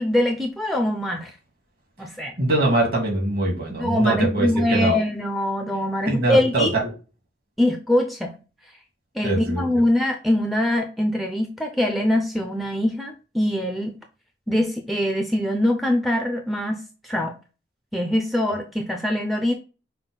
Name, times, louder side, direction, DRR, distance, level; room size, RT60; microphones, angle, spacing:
voice 1, 0.0-1.3 2.0-2.3 3.7-6.8 7.6-8.3 9.1-14.0 14.5-16.8 17.1-17.4 17.9-19.5, left 1 dB, ahead, 3 dB, 0.5 m, -23 dB
voice 2, 2.4-5.0 6.1-6.9 9.2-9.6, right 2 dB, 55° right, 0 dB, 2.1 m, -22 dB
5.6 x 2.2 x 3.8 m, 0.32 s
head